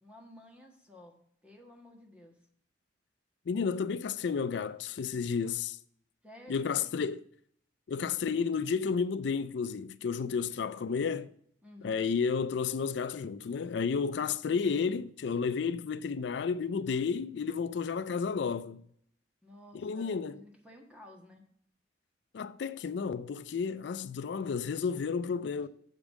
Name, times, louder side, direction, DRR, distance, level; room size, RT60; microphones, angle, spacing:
voice 1, 0.0-2.4 6.2-7.1 11.6-12.1 19.4-21.4, left 1 dB, 5° right, 1.4 m, -53 dB
voice 2, 3.5-5.8 6.5-7.2 7.9-11.3 11.8-18.8 19.7-20.4 22.3-25.7, left 5 dB, 75° left, 0.4 m, -32 dB
7.1 x 5.3 x 7.3 m
head